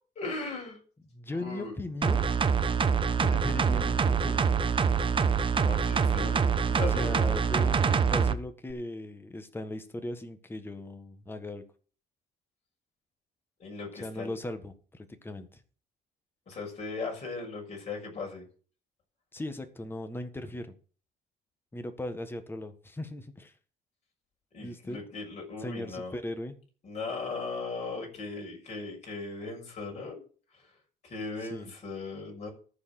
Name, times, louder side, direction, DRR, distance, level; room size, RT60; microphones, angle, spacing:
voice 1, 0.1-0.8 1.3-1.8 5.5-7.1 13.6-14.4 16.5-18.4 24.5-26.1 26.8-30.2 30.5-30.7 31.0-32.5, left 3 dB, 40° left, 0 dB, 6.5 m, -38 dB
voice 2, 1.1-2.3 3.2-4.5 6.8-11.6 14.0-15.6 19.3-20.7 21.7-23.5 24.6-25.0 25.6-26.6 31.4-31.7, left 1 dB, 15° left, 8 dB, 1.5 m, -38 dB
sound 1, 2.0-8.3 8.7-8.8, right 6 dB, 30° right, 0.9 m, -25 dB
14.0 x 4.8 x 7.7 m, 0.41 s
cardioid pair, 110°, 17 cm